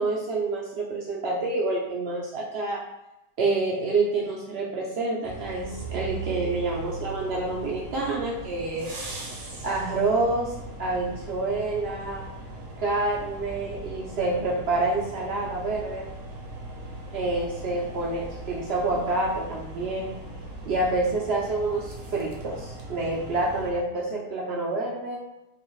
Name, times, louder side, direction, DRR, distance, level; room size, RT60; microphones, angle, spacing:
voice 1, 0.0-2.8 3.4-9.0 9.6-12.3 12.8-16.1 17.1-20.2 20.6-25.2, right 2 dB, 85° right, -3 dB, 0.5 m, -28 dB
sound 1, 5.2-23.7, right 2 dB, 60° right, 1.0 m, -39 dB
4.1 x 2.6 x 3.1 m, 0.93 s
omnidirectional pair, 1.8 m